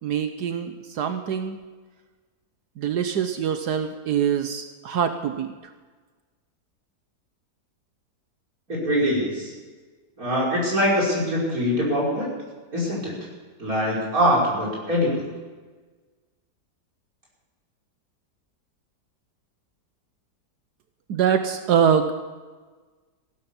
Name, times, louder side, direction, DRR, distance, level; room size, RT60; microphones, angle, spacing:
voice 1, 0.0-1.6 2.8-5.5 21.1-22.1, right 8 dB, 75° right, 8 dB, 1.4 m, -24 dB
voice 2, 8.7-9.5 10.2-12.3 12.7-13.1 13.6-15.2, equal, 55° right, -5 dB, 6.2 m, -23 dB
16.0 x 12.5 x 7.1 m, 1.4 s
omnidirectional pair, 1.8 m